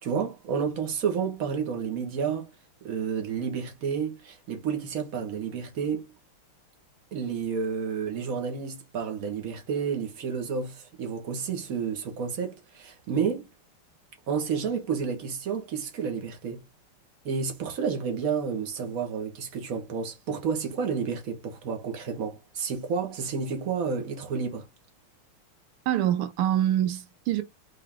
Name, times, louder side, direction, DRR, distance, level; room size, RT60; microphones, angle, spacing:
voice 1, 0.0-2.5 2.8-6.1 7.1-13.5 14.3-16.6 17.2-24.7, right 6 dB, 45° right, 1.7 m, -30 dB
voice 2, 25.9-27.4, right 11 dB, 90° right, 1.7 m, -25 dB
3.9 x 3.7 x 3.6 m
omnidirectional pair, 2.4 m